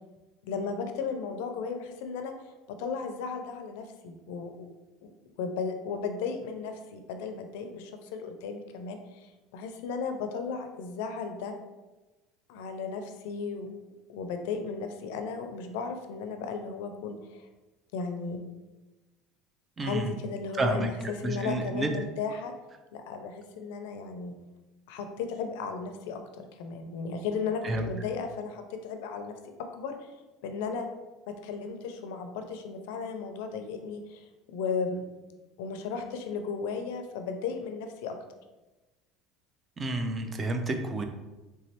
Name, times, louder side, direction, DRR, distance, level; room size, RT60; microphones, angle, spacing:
voice 1, 0.4-2.3 2.7-4.7 5.0-5.1 5.4-11.5 12.5-13.7 14.1-17.5 17.9-18.4 19.8-22.5 22.9-24.4 24.9-30.1 30.4-30.9 31.3-35.0 35.6-38.2, left 5 dB, 85° left, 6 dB, 0.4 m, -35 dB
voice 2, 19.8-20.1 20.6-21.9 27.6-27.9 39.8-41.0, right 2 dB, 20° right, 5 dB, 0.3 m, -30 dB
3.4 x 3.1 x 2.8 m, 1.1 s
cardioid pair, 160°, 0 cm